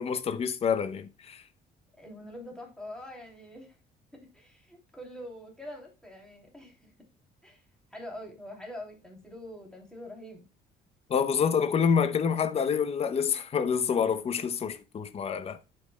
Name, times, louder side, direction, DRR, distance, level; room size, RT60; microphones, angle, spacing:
voice 1, 0.0-1.4 11.1-15.6, left 6 dB, 35° left, 0.7 m, -27 dB
voice 2, 2.0-3.7 4.3-6.9 7.4-7.6 7.9-10.5, left 1 dB, 5° left, 2.9 m, -44 dB
11.5 x 5.4 x 2.2 m
cardioid pair, 110°, 17 cm